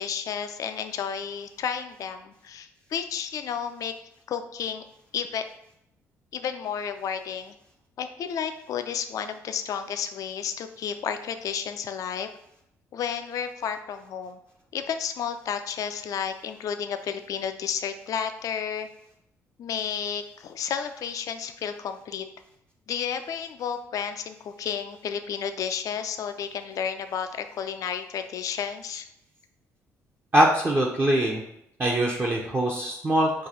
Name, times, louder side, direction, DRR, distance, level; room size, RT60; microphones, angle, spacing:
voice 1, 0.0-3.9 4.3-4.8 5.1-5.4 6.3-7.5 8.0-12.3 12.9-14.4 14.7-18.9 19.6-22.3 22.9-29.1, left 7 dB, 45° left, 8 dB, 0.4 m, -32 dB
voice 2, 30.3-31.4 31.8-33.5, right 1 dB, 25° right, -3 dB, 0.7 m, -23 dB
4.7 x 2.3 x 4.0 m, 0.78 s
figure-of-eight pair, 45°, 8 cm